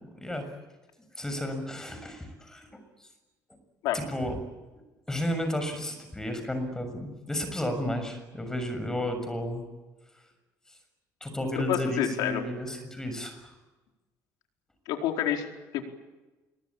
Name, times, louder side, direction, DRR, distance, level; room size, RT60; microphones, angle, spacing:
voice 1, 1.1-2.7 3.9-4.4 5.1-9.7 11.2-13.5, left 1 dB, 10° left, 7 dB, 6.7 m, -32 dB
voice 2, 11.5-12.4 14.9-15.4 15.7-15.8, left 11 dB, 85° left, 3 dB, 4.5 m, -28 dB
27.0 x 22.5 x 8.7 m, 1.2 s
cardioid pair, 140°, 7 cm